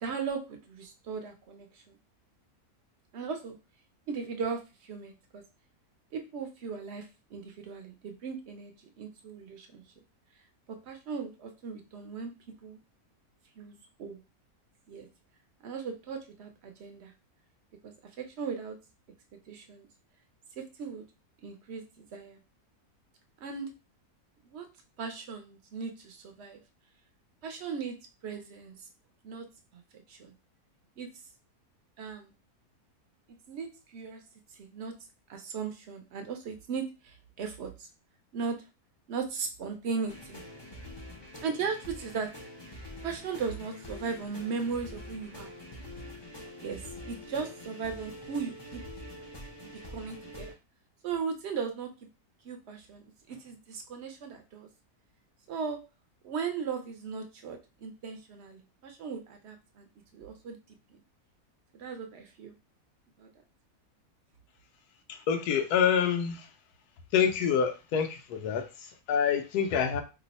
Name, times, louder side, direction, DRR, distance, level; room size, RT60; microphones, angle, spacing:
voice 1, 0.0-2.0 3.1-3.6 4.1-5.4 6.1-9.8 10.7-12.3 12.6-12.8 13.6-14.2 14.9-15.1 15.6-17.1 17.8-18.8 19.5-19.9 20.6-21.0 21.4-22.4 23.4-23.7 24.4-24.7 25.0-26.6 27.4-28.0 28.2-28.8 29.2-29.5 29.7-30.3 31.0-31.1 32.0-32.3 33.5-34.2 34.6-34.9 35.3-37.9 38.3-38.6 39.1-40.4 41.4-42.3 43.0-45.5 46.6-48.8 49.6-50.5 51.0-51.9 52.4-54.7 55.5-55.8 56.2-59.9 60.1-61.0 61.7-62.5 63.2-63.3 69.8-69.9, right 5 dB, 60° right, 6 dB, 0.7 m, -37 dB
sound 1, 40.1-50.5, left 1 dB, 35° left, 0.4 m, -45 dB
voice 2, 65.1-66.5 67.1-70.0, left 7 dB, 85° left, 6 dB, 1.1 m, -27 dB
3.0 x 2.0 x 4.0 m, 0.29 s
omnidirectional pair, 1.6 m